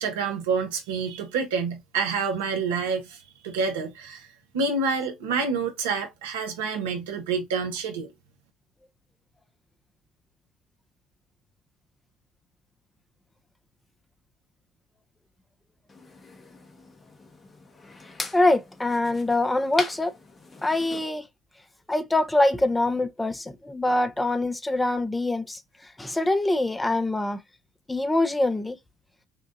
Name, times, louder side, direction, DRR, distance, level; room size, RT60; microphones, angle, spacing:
voice 1, 0.0-4.3 4.5-8.1, right 5 dB, 80° right, 1.1 m, -28 dB
sound 1, 15.9-21.0, left 2 dB, 30° left, 1.2 m, -40 dB
voice 2, 18.3-20.1 20.6-21.3 21.9-25.6 26.0-27.4 27.9-28.8, left 2 dB, 15° left, 0.8 m, -24 dB
5.7 x 2.5 x 2.6 m
hypercardioid pair, 60°, 0 cm